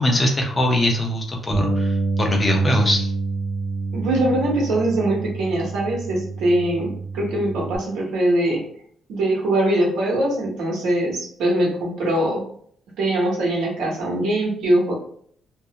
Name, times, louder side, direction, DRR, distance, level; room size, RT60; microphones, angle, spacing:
voice 1, 0.0-3.1, left 1 dB, 25° left, 1 dB, 0.7 m, -21 dB
Bass guitar, 1.5-7.8, right 3 dB, 45° right, 0.7 m, -27 dB
voice 2, 3.9-8.6 9.1-12.4 13.0-14.9, right 1 dB, 75° right, -3 dB, 0.9 m, -22 dB
2.4 x 2.1 x 2.8 m, 0.62 s
cardioid pair, 90°, 0 cm